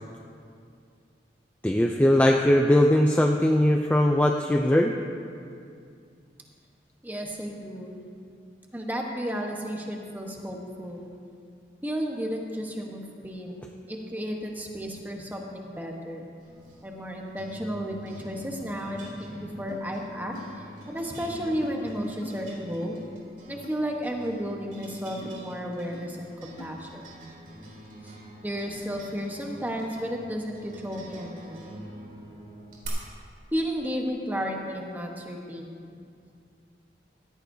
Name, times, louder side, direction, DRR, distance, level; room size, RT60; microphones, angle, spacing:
voice 1, 1.6-4.9, left 1 dB, 10° left, 2 dB, 0.4 m, -20 dB
voice 2, 7.0-8.0 8.7-11.1 11.8-16.3 16.8-20.3 20.9-23.0 23.4-27.0 28.0-31.6 33.5-35.7, equal, 10° right, 0 dB, 1.1 m, -33 dB
sound 1, 16.4-32.9, right 1 dB, 50° right, 3.2 m, -45 dB
sound 2, 19.7-19.8 20.3-20.5 21.0-21.1 21.6-21.8 22.2-22.4 22.8-23.0 23.6-23.8 24.4-24.6 25.2-25.4 25.9-26.0 26.6-26.7, left 1 dB, 65° left, 1.3 m, -44 dB
17.0 x 14.0 x 2.7 m, 2.3 s
head